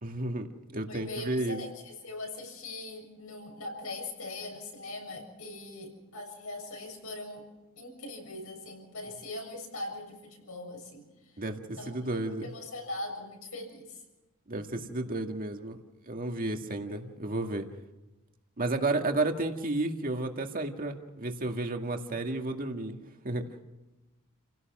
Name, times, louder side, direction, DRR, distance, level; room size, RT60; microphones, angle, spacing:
voice 1, 0.0-0.5 0.7-1.6 11.4-12.5 14.5-15.8 16.1-17.7 18.6-23.0 23.2-23.6, right 2 dB, 40° right, 4 dB, 2.0 m, -32 dB
voice 2, 0.9-7.4 7.8-11.0 11.8-14.0 16.9-17.0, left 2 dB, 75° left, 2 dB, 7.0 m, -41 dB
30.0 x 17.0 x 6.1 m, 1.1 s
head